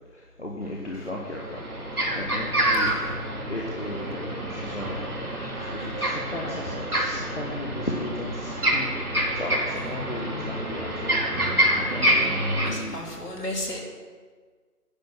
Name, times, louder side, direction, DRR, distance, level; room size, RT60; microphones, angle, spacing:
voice 1, 0.1-1.6 2.1-2.9 3.5-8.9 9.3-12.1 12.7-12.9, left 1 dB, 45° left, -2 dB, 1.3 m, -36 dB
sound 1, 0.6-0.7 1.1-12.7, right 1 dB, 65° right, 2.8 m, -27 dB
voice 2, 2.7-3.1 5.8-5.9 9.8-9.9 12.6-13.8, left 1 dB, 70° left, -2 dB, 3.3 m, -35 dB
10.5 x 8.8 x 6.0 m, 1.5 s
figure-of-eight pair, 180°, 48 cm